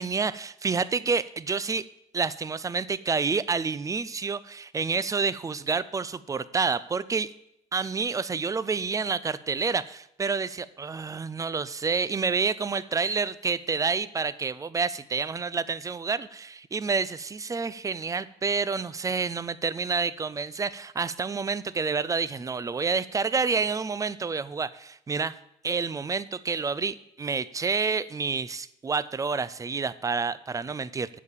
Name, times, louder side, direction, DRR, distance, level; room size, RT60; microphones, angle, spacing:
voice 1, 0.0-1.9 2.1-7.3 7.7-25.4 25.6-31.1, right 5 dB, 20° right, 17 dB, 0.4 m, -28 dB
8.5 x 6.7 x 7.2 m, 0.77 s
cardioid pair, 110°, 17 cm